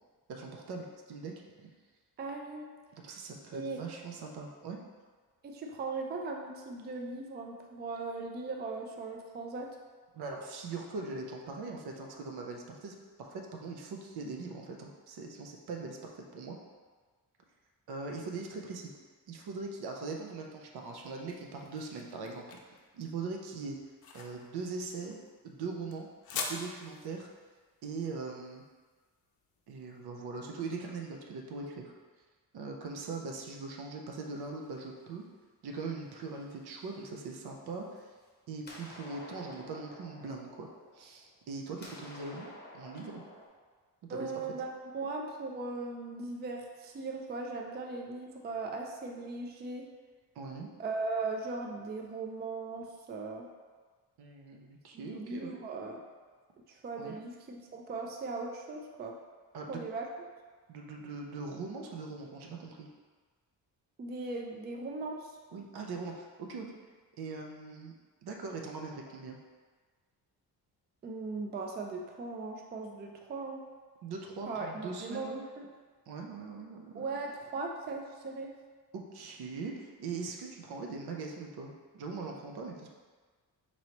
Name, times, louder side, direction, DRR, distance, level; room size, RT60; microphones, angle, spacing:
voice 1, 0.3-1.7 2.9-4.8 10.1-16.6 17.9-18.9 19.3-22.6 22.9-23.8 24.1-26.1 26.3-27.3 27.8-28.6 29.7-31.9 32.5-35.2 35.6-38.1 38.5-40.7 40.9-42.5 42.7-43.2 44.1-44.5 50.3-50.7 54.2-55.6 57.0-57.2 59.5-59.8 60.7-62.9 65.5-66.7 67.2-67.9 68.2-69.4 74.0-75.4 76.1-77.1 78.9-82.9, right 4 dB, 70° right, 1 dB, 0.7 m, -41 dB
voice 2, 2.2-2.7 3.5-3.8 5.4-9.8 44.1-49.9 50.8-53.5 54.9-56.0 56.7-59.2 59.7-60.1 64.0-65.3 71.0-73.6 74.5-75.7 76.9-78.5, right 3 dB, 25° right, 2 dB, 0.3 m, -38 dB
sound 1, 20.8-29.8, left 5 dB, 60° left, 0.6 m, -45 dB
sound 2, 34.4-35.2 35.7-37.2 37.9-38.3 38.6-41.5 41.8-43.5, left 2 dB, 25° left, 0.7 m, -52 dB
4.1 x 3.0 x 2.9 m, 1.5 s
cardioid pair, 100°, 40 cm